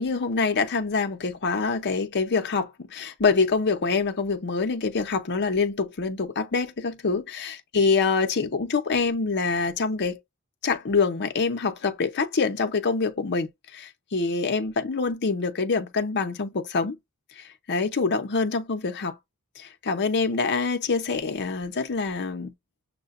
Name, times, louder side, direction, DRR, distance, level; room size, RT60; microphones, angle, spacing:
voice 1, 0.0-10.2 10.6-17.0 17.4-19.2 19.6-22.5, left 4 dB, 50° left, 0.7 m, -25 dB
6.5 x 2.2 x 2.4 m
head